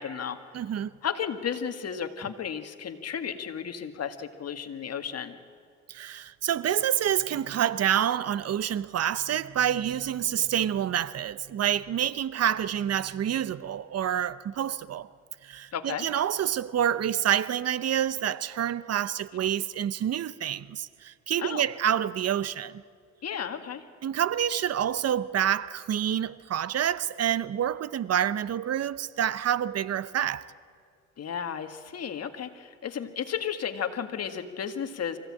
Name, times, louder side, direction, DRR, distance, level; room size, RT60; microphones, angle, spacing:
voice 1, 0.0-0.4 1.0-5.4 15.7-16.1 21.4-21.7 23.2-23.9 31.2-35.2, left 8 dB, 55° left, 1.8 m, -33 dB
voice 2, 0.5-0.9 5.9-15.1 15.4-22.8 24.0-30.5, right 10 dB, 55° right, 0.7 m, -28 dB
24.5 x 16.0 x 8.8 m
cardioid pair, 90°, 30 cm